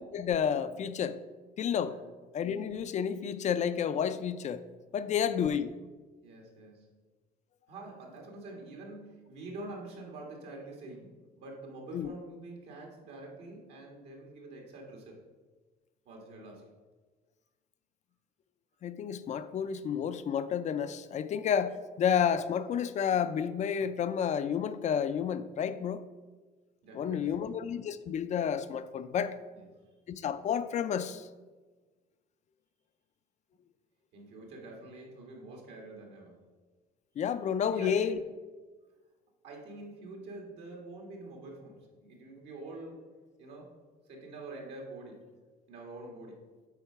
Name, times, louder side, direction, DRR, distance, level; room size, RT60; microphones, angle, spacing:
voice 1, 0.1-1.2 1.6-2.0 2.3-4.6 4.9-5.7 11.9-12.1 18.8-26.0 26.9-29.4 30.1-31.3 37.2-38.2, left 8 dB, 45° left, 13 dB, 0.4 m, -30 dB
voice 2, 4.9-5.5 6.2-6.9 7.7-15.2 16.1-16.6 26.8-27.5 29.5-29.7 34.1-36.4 37.6-38.2 39.4-43.1 43.4-43.7 44.1-45.3 45.7-46.4, right 2 dB, 80° right, 0 dB, 1.9 m, -46 dB
8.3 x 3.8 x 5.6 m, 1.3 s
cardioid pair, 110°, 17 cm